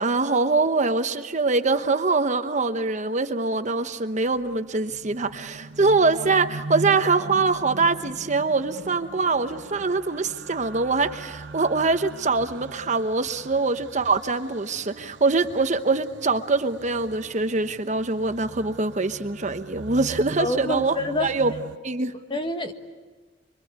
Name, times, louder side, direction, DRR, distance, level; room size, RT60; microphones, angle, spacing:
voice 1, 0.0-20.9 21.2-21.5 21.8-22.1, right 3 dB, 40° right, 9 dB, 1.1 m, -23 dB
sound 1, 3.9-21.8, right 3 dB, 80° right, 0.9 m, -40 dB
voice 2, 20.4-21.3 22.3-22.7, left 2 dB, 30° left, 6 dB, 1.6 m, -27 dB
25.5 x 24.5 x 9.5 m, 1.4 s
head